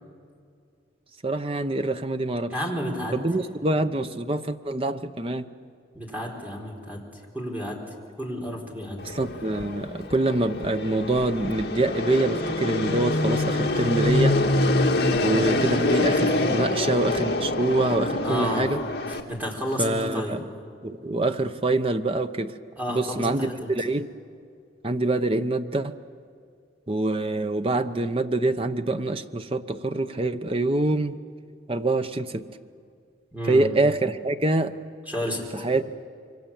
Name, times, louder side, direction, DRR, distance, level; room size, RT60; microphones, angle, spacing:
voice 1, 1.2-2.5 3.1-5.5 9.0-14.4 15.2-18.8 19.8-20.4 20.8-22.5 22.9-24.1 24.8-25.9 26.9-31.2 31.7-32.4 33.5-34.8 35.5-36.1, right 2 dB, 30° right, 9 dB, 0.8 m, -25 dB
voice 2, 2.5-3.2 5.9-7.0 7.3-7.8 8.2-9.0 16.4-16.5 18.2-18.7 19.1-20.4 22.8-23.7 33.3-33.7 35.1-35.6, equal, 10° right, -2 dB, 4.1 m, -31 dB
Fixed-wing aircraft airplane, 9.0-19.2, left 2 dB, 60° left, 1.8 m, -25 dB
27.0 x 24.0 x 7.2 m, 2.3 s
head